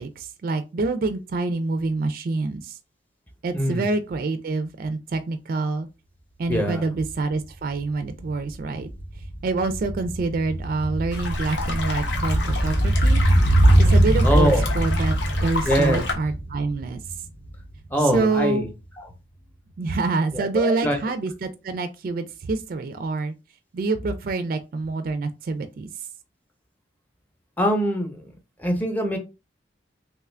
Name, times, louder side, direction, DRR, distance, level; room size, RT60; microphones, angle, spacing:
voice 1, 0.0-2.8 3.4-5.9 6.4-8.9 9.4-13.2 13.8-15.1 15.4-17.0 18.1-18.7 19.8-23.3 23.7-25.9, right 3 dB, 55° right, 0.3 m, -26 dB
voice 2, 3.5-3.9 6.5-6.9 14.2-14.6 15.7-16.0 17.9-18.7 20.3-21.0 27.6-28.3 28.6-29.2, equal, 10° left, 0.6 m, -23 dB
sound 1, 7.1-7.2 7.5-17.8 18.1-18.2, right 1 dB, 45° left, 0.7 m, -22 dB
sound 2, 11.1-16.1, left 3 dB, 85° left, 0.8 m, -30 dB
3.0 x 2.3 x 3.3 m
head